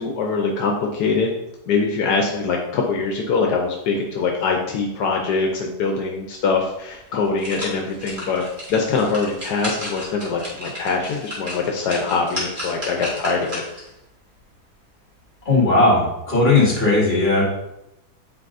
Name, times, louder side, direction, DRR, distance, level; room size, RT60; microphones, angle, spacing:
voice 1, 0.0-1.3 1.7-8.4 8.7-13.6, left 4 dB, 80° left, 1 dB, 1.3 m, -23 dB
sound 1, 6.6-6.7 7.1-13.9 14.4-14.5, equal, 30° right, 2.1 m, -33 dB
voice 2, 15.5-17.4, left 2 dB, 40° left, -5 dB, 2.4 m, -17 dB
8.4 x 4.7 x 2.6 m, 0.86 s
omnidirectional pair, 1.7 m